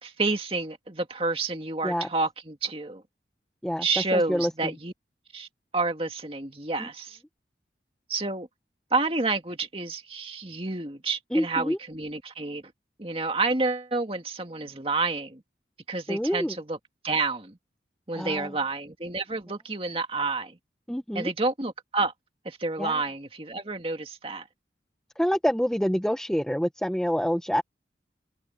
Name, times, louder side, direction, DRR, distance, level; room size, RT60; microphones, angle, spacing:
voice 1, 0.0-3.0 3.8-4.9 5.3-5.5 5.7-7.2 8.1-8.5 8.9-12.6 13.0-15.4 15.9-16.8 17.0-17.6 18.1-20.6 21.1-22.1 22.4-24.4, right 3 dB, 30° right, 2.2 m, -29 dB
voice 2, 4.1-4.5 11.3-11.8 16.1-16.5 18.1-18.5 20.9-21.3 22.8-23.0 25.2-27.6, equal, 5° left, 0.7 m, -26 dB
head